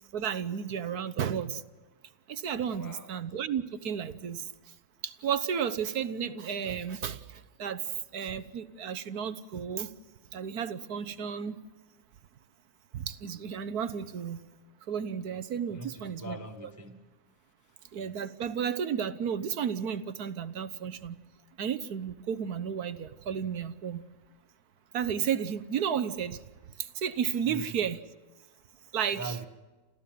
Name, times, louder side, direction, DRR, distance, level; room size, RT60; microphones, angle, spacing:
voice 1, 0.1-1.6 2.3-4.5 5.0-9.9 10.3-11.6 12.9-14.4 14.9-16.4 17.9-21.2 21.6-24.0 24.9-26.4 26.8-28.0 28.9-29.4, right 8 dB, 60° right, 1.4 m, -33 dB
voice 2, 2.7-3.1 15.7-17.1 27.5-27.8 29.1-29.4, right 2 dB, 10° right, 1.1 m, -41 dB
29.0 x 14.5 x 7.6 m
omnidirectional pair, 2.0 m